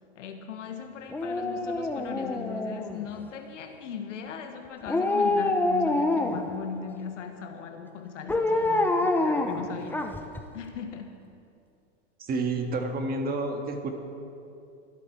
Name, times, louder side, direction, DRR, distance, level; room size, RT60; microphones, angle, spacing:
voice 1, 0.1-10.2 10.5-11.2, left 6 dB, 85° left, 6 dB, 1.5 m, -39 dB
Dog, 1.1-3.2 4.9-6.6 8.3-10.4 10.7-10.8, left 2 dB, 5° left, 0.7 m, -26 dB
voice 2, 12.2-13.9, right 3 dB, 25° right, 4 dB, 1.7 m, -29 dB
24.0 x 8.5 x 4.6 m, 2.5 s
hypercardioid pair, 120°, 36 cm